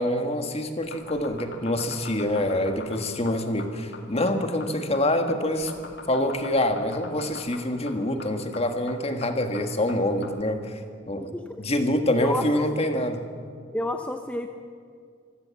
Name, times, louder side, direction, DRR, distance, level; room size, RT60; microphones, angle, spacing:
voice 1, 0.0-5.7 6.1-10.8 11.1-11.3 11.6-13.2, left 1 dB, 30° left, 6 dB, 1.7 m, -26 dB
sound 1, 0.8-10.4, left 3 dB, 60° left, 2.4 m, -42 dB
voice 2, 11.1-11.6 12.1-12.7 13.7-14.5, left 1 dB, 5° left, 5 dB, 0.7 m, -30 dB
25.0 x 16.0 x 7.2 m, 2.2 s
head